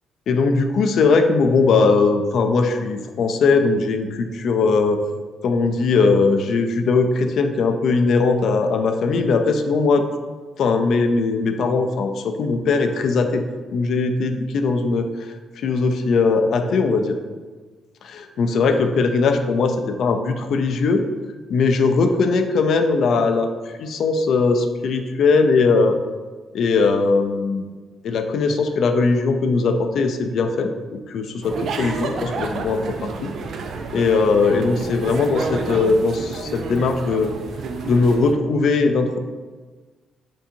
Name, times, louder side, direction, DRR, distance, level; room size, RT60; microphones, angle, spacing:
voice 1, 0.3-5.1 5.4-10.0 10.6-13.4 13.7-17.2 18.0-21.0 21.5-23.5 23.8-26.0 26.5-27.6 28.0-33.3 33.9-37.3 37.8-39.2, left 4 dB, 65° left, 6 dB, 0.4 m, -19 dB
sound 1, 31.4-38.3, right 4 dB, 65° right, 0.4 m, -30 dB
5.8 x 2.6 x 2.7 m, 1.4 s
cardioid pair, 90°, 0 cm